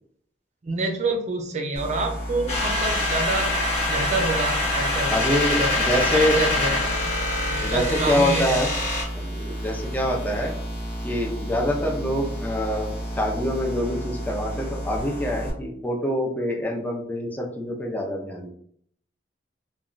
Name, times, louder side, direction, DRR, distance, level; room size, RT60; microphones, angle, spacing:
voice 1, 0.6-3.5 3.9-8.6, right 2 dB, 40° right, 4 dB, 0.5 m, -28 dB
sound 1, 1.7-15.5, equal, 60° left, 1.2 m, -32 dB
sound 2, 2.5-9.0, left 2 dB, 35° left, 0.8 m, -25 dB
voice 2, 5.1-6.4 7.6-8.7 9.1-10.5 11.0-18.5, left 1 dB, 10° left, -1 dB, 0.5 m, -25 dB
3.1 x 2.2 x 2.4 m, 0.64 s
head